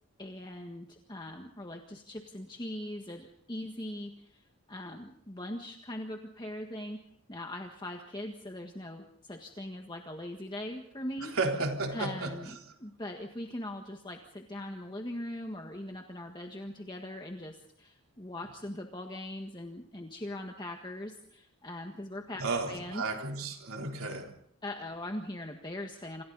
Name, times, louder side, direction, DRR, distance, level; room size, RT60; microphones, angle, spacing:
voice 1, 0.2-7.0 7.3-11.3 11.9-23.0 24.6-26.2, left 1 dB, 20° left, 3 dB, 1.6 m, -41 dB
voice 2, 11.4-12.3 22.4-24.3, right 3 dB, 70° right, 2 dB, 3.7 m, -32 dB
29.0 x 27.0 x 4.1 m, 0.71 s
head